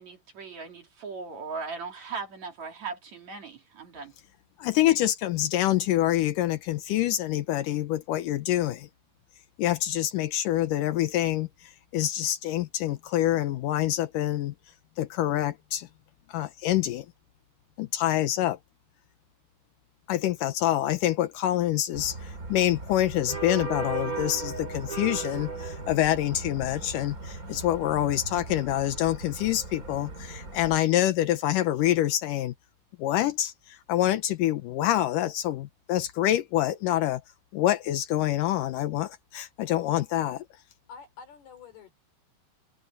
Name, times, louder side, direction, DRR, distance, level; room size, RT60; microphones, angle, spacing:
voice 1, 0.0-4.1, right 4 dB, 45° right, 3.4 m, -38 dB
voice 2, 4.6-8.9 9.6-14.5 15.0-15.9 16.3-17.1 17.8-18.6 20.1-32.5 33.0-37.2 37.5-40.4, left 13 dB, 85° left, 1.9 m, -26 dB
sound 1, 21.9-30.8, right 4 dB, 25° right, 2.6 m, -37 dB
voice 3, 40.9-41.9, left 6 dB, 65° left, 6.2 m, -47 dB
omnidirectional pair, 5.0 m